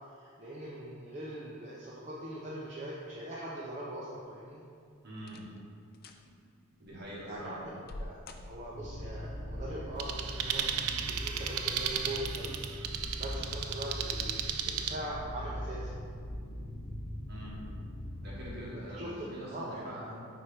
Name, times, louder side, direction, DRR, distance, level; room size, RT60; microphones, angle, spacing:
voice 1, 0.2-4.6 7.2-7.7 8.0-8.2 8.4-10.7 11.0-12.6 13.2-14.3 14.7-16.0 18.8-19.8, right 1 dB, 30° right, -6 dB, 0.6 m, -41 dB
sound 1, 4.4-4.7 5.2-5.6 5.9-6.3 6.8-9.0 10.2-10.8 11.3-11.4 12.1-12.3 12.7-12.8, left 1 dB, 45° left, 0.3 m, -48 dB
voice 2, 5.0-5.5 6.8-7.8 17.3-17.7 18.2-20.2, equal, 50° right, -5 dB, 1.4 m, -44 dB
sound 2, 8.7-18.5, equal, 65° left, 0.7 m, -41 dB
sound 3, 10.0-15.0, right 8 dB, 85° right, 0.4 m, -35 dB
4.6 x 4.3 x 4.9 m, 2.3 s
head